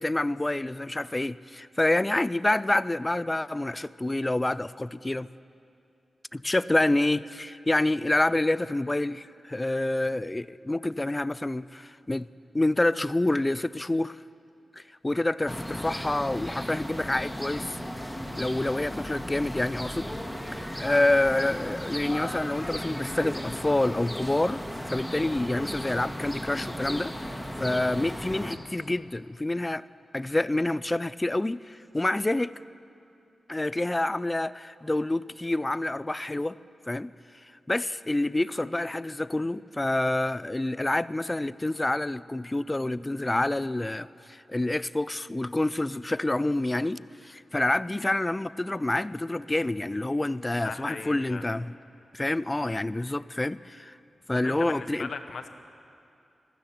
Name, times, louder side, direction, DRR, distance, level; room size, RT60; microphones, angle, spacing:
voice 1, 0.0-5.3 6.3-12.3 12.5-14.2 14.7-17.8 18.4-20.1 20.8-24.6 24.9-29.8 30.1-32.5 33.5-36.6 36.9-37.1 37.7-51.7 52.1-53.9 54.3-55.1, left 2 dB, 20° left, 17 dB, 0.3 m, -27 dB
sound 1, 15.5-28.6, equal, 5° left, 1.2 m, -35 dB
voice 2, 50.6-51.4 54.4-55.5, left 4 dB, 70° left, 7 dB, 0.9 m, -37 dB
16.0 x 12.5 x 5.9 m, 2.6 s
cardioid pair, 60°, 0 cm